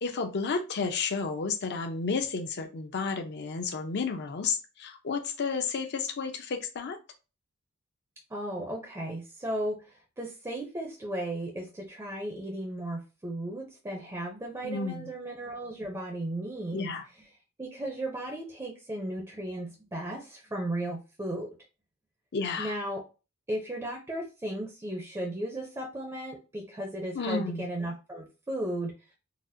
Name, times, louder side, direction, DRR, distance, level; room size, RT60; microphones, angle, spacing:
voice 1, 0.0-7.0 14.6-15.1 16.7-17.0 22.3-22.7 27.1-27.7, left 4 dB, 50° left, 6 dB, 0.5 m, -32 dB
voice 2, 8.3-16.9 17.6-21.5 22.6-23.0 23.5-28.9, right 1 dB, 15° right, 1 dB, 0.5 m, -35 dB
4.0 x 2.1 x 2.6 m, 0.31 s
head